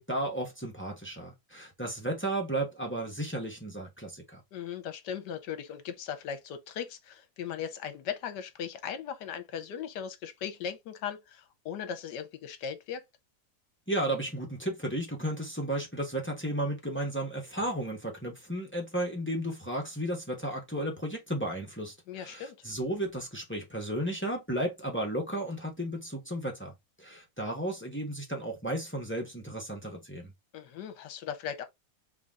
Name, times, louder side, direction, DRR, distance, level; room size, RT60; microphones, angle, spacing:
voice 1, 0.0-4.4 13.9-30.3, right 1 dB, 10° left, 0.8 m, -34 dB
voice 2, 4.5-13.0 22.1-22.6 30.5-31.6, left 8 dB, 70° left, 1.3 m, -38 dB
3.8 x 3.5 x 3.6 m
omnidirectional pair, 2.0 m